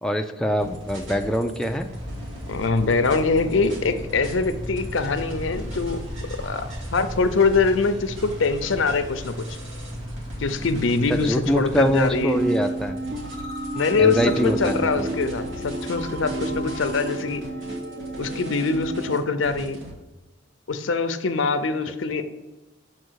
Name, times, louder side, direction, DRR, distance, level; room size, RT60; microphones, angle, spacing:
voice 1, 0.0-1.9 11.1-13.0 14.0-15.1, equal, 5° left, 4 dB, 0.4 m, -24 dB
sound 1, 0.6-19.9, equal, 85° right, 2.3 m, -40 dB
sound 2, 1.9-12.2, equal, 25° right, 1.0 m, -36 dB
voice 2, 2.5-6.0 6.4-9.6 10.4-12.4 13.7-17.4 18.2-19.8 20.7-22.2, left 4 dB, 85° left, 9 dB, 0.6 m, -23 dB
sound 3, 12.2-19.2, right 2 dB, 60° right, 1.1 m, -31 dB
6.6 x 4.3 x 6.3 m, 1.1 s
head